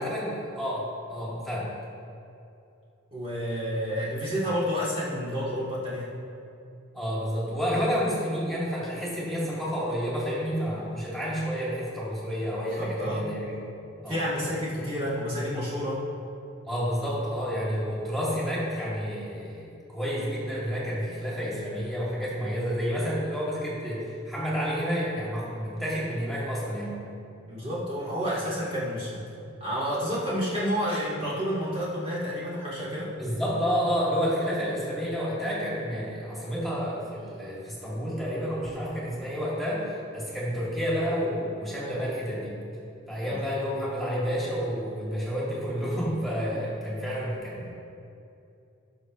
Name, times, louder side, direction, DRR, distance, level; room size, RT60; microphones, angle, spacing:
voice 1, 0.0-1.7 6.9-13.6 14.0-14.5 16.7-27.0 33.2-42.6 43.1-47.7, equal, ahead, -8 dB, 2.5 m, -30 dB
voice 2, 3.1-6.1 12.7-13.3 14.1-16.0 27.5-29.2 29.6-33.1 43.2-43.4 46.5-46.6, equal, 30° right, -8 dB, 2.1 m, -30 dB
17.0 x 6.7 x 3.1 m, 2.7 s
head